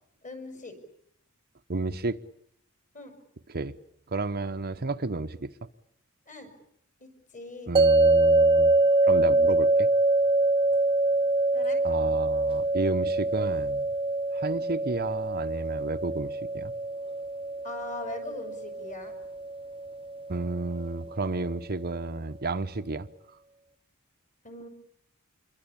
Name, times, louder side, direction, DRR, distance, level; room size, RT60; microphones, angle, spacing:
voice 1, 0.2-0.7 2.9-3.1 6.3-6.5 7.0-7.7 11.5-11.8 17.6-19.1 24.4-24.7, left 2 dB, 35° left, 6.7 m, -40 dB
voice 2, 1.7-2.2 3.5-3.7 4.1-5.5 7.7-8.8 9.1-9.9 11.8-13.9 14.3-16.7 20.3-23.1, right 3 dB, 45° right, 1.0 m, -31 dB
sound 1, 7.8-20.9, right 2 dB, 25° right, 1.2 m, -25 dB
27.5 x 22.5 x 8.6 m
head